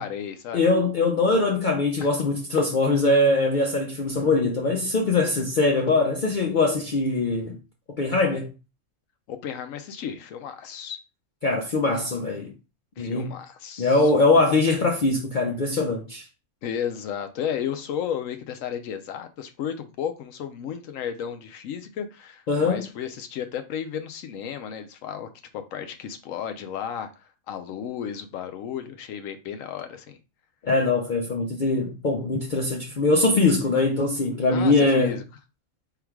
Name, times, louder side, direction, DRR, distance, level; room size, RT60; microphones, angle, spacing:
voice 1, 0.0-0.6 9.3-11.0 13.0-14.1 16.6-30.2 34.5-35.2, left 8 dB, 90° left, 1.0 m, -33 dB
voice 2, 0.5-7.6 8.0-8.5 11.4-12.5 13.0-13.3 13.8-16.2 22.5-22.8 30.6-35.2, left 3 dB, 55° left, 0.6 m, -22 dB
3.5 x 2.3 x 4.5 m
omnidirectional pair, 1.3 m